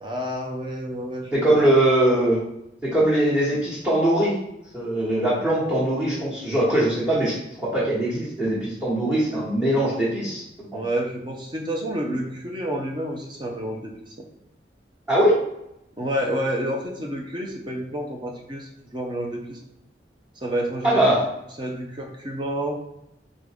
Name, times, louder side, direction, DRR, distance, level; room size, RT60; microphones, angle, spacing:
voice 1, 0.0-1.9 10.7-14.2 16.0-19.6 20.4-21.2 21.6-22.8, equal, 25° right, 1 dB, 0.6 m, -29 dB
voice 2, 1.3-2.4 2.8-4.4 4.7-10.4 10.7-10.8 15.1-15.3 20.8-21.2, right 1 dB, 10° right, -10 dB, 1.2 m, -21 dB
3.8 x 3.6 x 3.5 m, 0.83 s
head